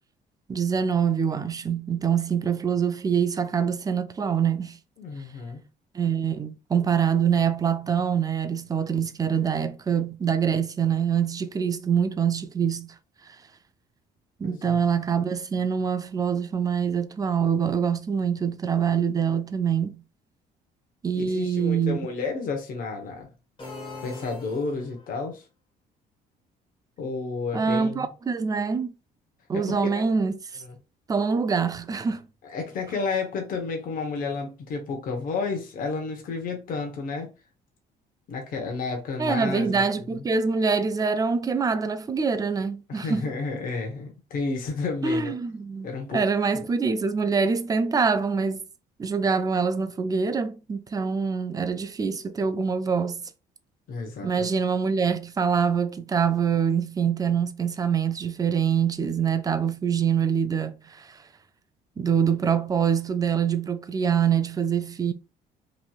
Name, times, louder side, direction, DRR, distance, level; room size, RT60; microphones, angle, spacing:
voice 1, 0.5-4.8 5.9-12.9 14.4-20.0 21.0-22.0 27.5-28.9 29.5-30.6 31.1-32.3 39.2-43.3 45.0-45.9 46.1-48.6 49.0-53.2 54.2-61.2 62.0-65.1, right 6 dB, 20° right, 0.4 m, -25 dB
voice 2, 5.0-5.7 14.4-14.8 21.2-23.3 24.0-25.4 27.0-28.1 29.5-30.0 30.6-30.8 32.4-37.3 38.3-40.2 42.9-45.3 45.8-46.2 46.5-46.7 53.9-54.5, left 4 dB, 55° left, 1.0 m, -31 dB
sound 1, 23.6-25.2, left 3 dB, 30° left, 1.6 m, -41 dB
3.1 x 2.6 x 2.3 m
cardioid pair, 110°, 17 cm